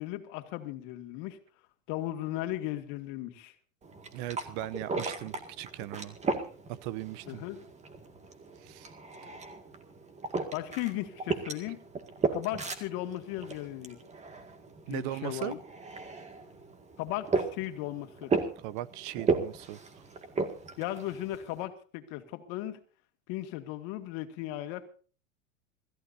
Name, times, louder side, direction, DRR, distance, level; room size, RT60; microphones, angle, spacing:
voice 1, 0.0-1.4 1.9-3.5 7.3-7.6 10.5-11.8 12.3-14.0 14.9-15.6 17.0-18.3 20.8-22.8 23.3-24.9, left 14 dB, 50° left, 2.1 m, -36 dB
sound 1, 3.8-21.6, right 4 dB, 15° right, 2.0 m, -36 dB
voice 2, 4.1-6.2 6.7-7.4 8.6-8.9 14.9-15.5 18.6-19.8, right 14 dB, 45° right, 0.6 m, -38 dB
26.0 x 15.0 x 2.7 m
supercardioid pair, 140°, 39 cm